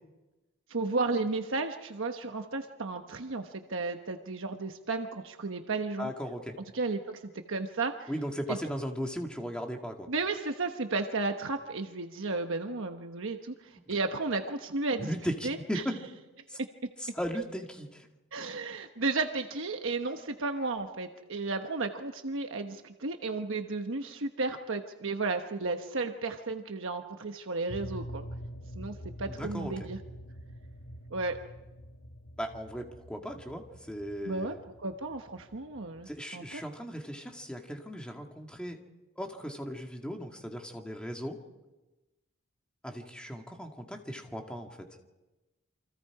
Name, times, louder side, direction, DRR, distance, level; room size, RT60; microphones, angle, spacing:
voice 1, 0.7-6.1 6.7-8.1 8.5-8.6 10.1-15.1 15.4-15.6 18.3-28.3 28.7-30.0 31.1-31.4 34.2-36.6, right 3 dB, 60° right, 5 dB, 1.2 m, -33 dB
voice 2, 6.0-6.6 8.1-10.1 15.0-15.8 16.5-16.6 17.0-18.1 29.3-29.9 32.4-34.6 36.1-38.8 39.2-41.4 42.8-44.8, equal, 5° left, 2 dB, 2.1 m, -37 dB
sound 1, 27.7-36.2, equal, 70° left, 1.4 m, -45 dB
29.0 x 25.0 x 4.9 m, 1.1 s
head